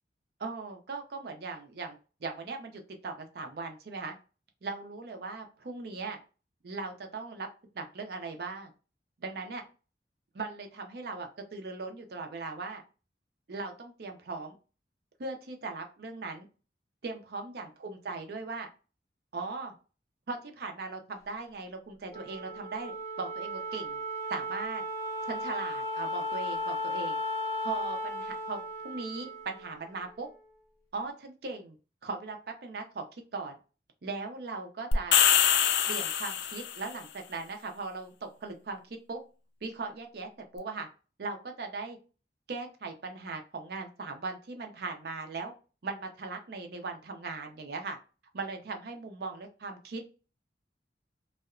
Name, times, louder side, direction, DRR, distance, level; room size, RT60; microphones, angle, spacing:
voice 1, 0.4-4.2 4.6-6.2 6.6-7.5 7.7-8.7 9.2-9.6 10.3-12.8 13.5-14.6 15.2-16.5 17.0-18.7 19.3-19.7 20.3-24.0 24.3-24.8 25.3-27.2 27.6-30.3 30.9-31.8 32.0-33.5 34.0-35.2 35.9-39.2 39.6-40.9 41.2-42.0 42.5-45.5 45.8-48.0 48.3-50.0, right 3 dB, 60° right, 0.5 m, -39 dB
Wind instrument woodwind instrument, 22.1-30.7, left 1 dB, 15° left, 0.5 m, -36 dB
sound 1, 34.9-36.8, left 8 dB, 70° left, 0.3 m, -24 dB
2.7 x 2.1 x 2.4 m
head